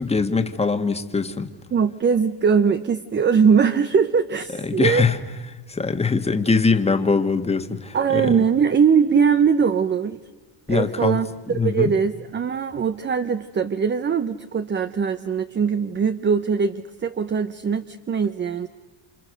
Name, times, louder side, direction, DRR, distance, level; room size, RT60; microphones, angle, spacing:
voice 1, 0.0-1.5 4.6-5.2 5.7-8.4 10.7-11.2 11.5-11.9, left 4 dB, 15° left, 7 dB, 1.6 m, -22 dB
voice 2, 1.7-5.0 7.9-10.2 10.7-18.7, right 6 dB, 25° right, 11 dB, 0.8 m, -21 dB
29.0 x 27.0 x 6.5 m, 1.2 s
cardioid pair, 125°, 42 cm